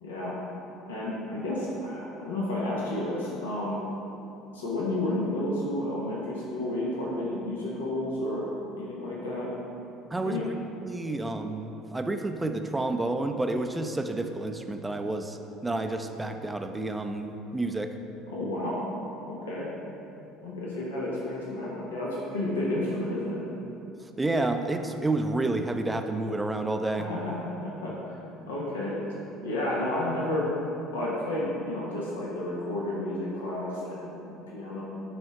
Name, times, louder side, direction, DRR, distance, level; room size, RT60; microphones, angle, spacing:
voice 1, 0.0-0.5 0.9-3.8 4.5-8.5 8.7-9.5 10.2-10.5 18.3-18.8 19.2-19.7 20.4-23.4 26.9-28.1 28.5-29.0 29.4-30.5 30.9-34.8, left 1 dB, 75° left, -5 dB, 1.3 m, -31 dB
voice 2, 10.1-10.4 10.8-15.4 15.6-17.9 24.2-27.1, right 2 dB, 15° right, 6 dB, 0.6 m, -29 dB
9.8 x 4.3 x 4.8 m, 2.8 s
figure-of-eight pair, 60°, 0 cm